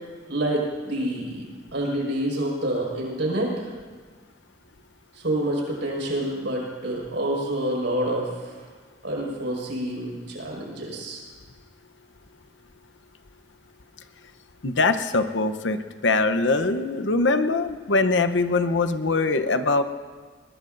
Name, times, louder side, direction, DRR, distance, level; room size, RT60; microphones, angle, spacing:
voice 1, 0.3-3.7 5.1-8.6 9.0-11.2, right 1 dB, 80° right, -3 dB, 5.4 m, -28 dB
voice 2, 14.6-19.8, left 3 dB, 85° left, 9 dB, 0.9 m, -22 dB
21.5 x 21.0 x 2.6 m, 1.5 s
head